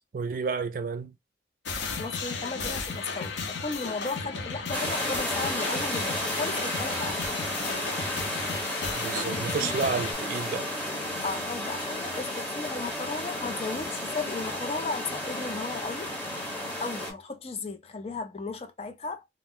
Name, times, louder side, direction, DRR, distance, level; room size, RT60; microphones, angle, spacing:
voice 1, 0.1-1.1 8.9-10.7, right 5 dB, 50° right, 0.3 m, -31 dB
sound 1, 1.7-10.1, left 4 dB, 90° left, 0.6 m, -34 dB
voice 2, 1.9-7.4 9.3-9.7 11.2-16.1 16.8-19.3, left 3 dB, 35° left, 0.4 m, -35 dB
sound 2, 4.7-17.1, left 1 dB, 10° left, 0.9 m, -32 dB
2.4 x 2.1 x 3.5 m
head